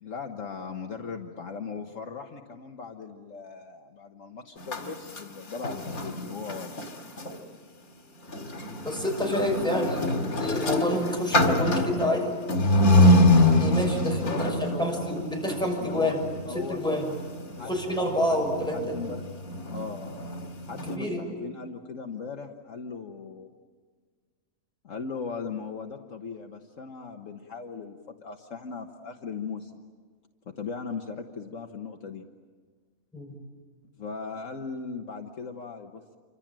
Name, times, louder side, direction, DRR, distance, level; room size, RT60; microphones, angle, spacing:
voice 1, 0.0-6.8 14.2-14.9 15.4-16.2 16.4-16.8 17.6-18.0 18.3-18.5 18.7-19.2 19.7-20.2 20.7-23.5 24.8-29.7 30.6-32.2 34.0-36.2, left 5 dB, 65° left, 4 dB, 1.6 m, -38 dB
sound 1, 4.6-7.4 8.2-21.0, left 1 dB, 80° left, 2.7 m, -25 dB
voice 2, 8.8-12.3 13.6-16.2 16.5-17.1 17.6-19.0 20.9-21.3 33.1-33.4, equal, 5° left, 0 dB, 6.4 m, -28 dB
28.5 x 25.5 x 7.6 m, 1.5 s
omnidirectional pair, 1.5 m